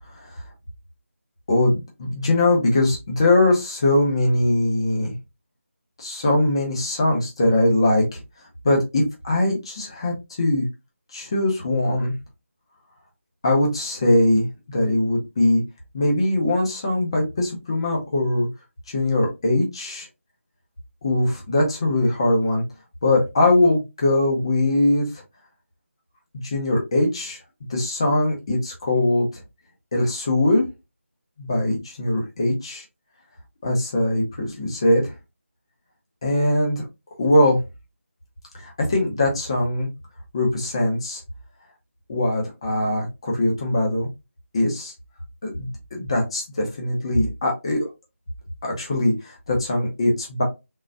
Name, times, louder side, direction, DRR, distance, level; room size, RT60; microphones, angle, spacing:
voice 1, 1.5-5.1 6.0-8.2 8.6-10.6 11.1-12.1 13.4-15.6 15.9-18.5 18.9-20.1 21.0-22.6 23.0-25.2 26.4-27.4 27.7-29.4 29.9-30.6 31.4-32.8 33.6-35.1 36.2-36.8 37.2-37.6 38.5-39.9 40.3-41.2 42.1-44.1 44.5-44.9 45.4-47.9 48.6-50.4, left 1 dB, 20° left, 0 dB, 0.9 m, -21 dB
3.8 x 3.1 x 2.6 m, 0.23 s
figure-of-eight pair, 175°, 7 cm